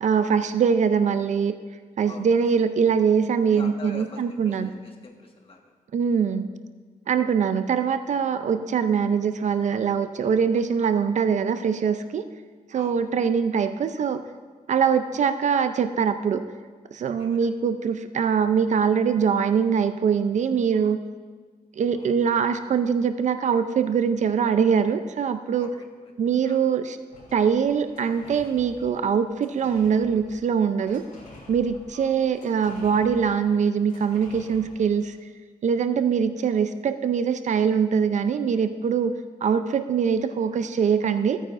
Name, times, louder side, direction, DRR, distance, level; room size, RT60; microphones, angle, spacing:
voice 1, 0.0-1.5 2.0-4.7 5.9-6.6 7.1-12.2 12.7-14.2 14.7-16.4 16.9-21.0 21.8-25.7 26.2-27.0 27.3-31.0 31.5-35.2 35.6-39.1 39.4-41.4, right 6 dB, 60° right, 10 dB, 0.5 m, -23 dB
voice 2, 3.5-5.7 7.2-7.3 12.7-13.0 17.2-17.5 21.9-22.1 25.6-25.8 26.4-26.6 31.9-32.1, left 3 dB, 40° left, 2 dB, 1.4 m, -44 dB
sound 1, 27.1-35.1, left 2 dB, 80° left, 3.4 m, -49 dB
15.5 x 9.1 x 2.5 m, 1.5 s
cardioid pair, 110°, 14 cm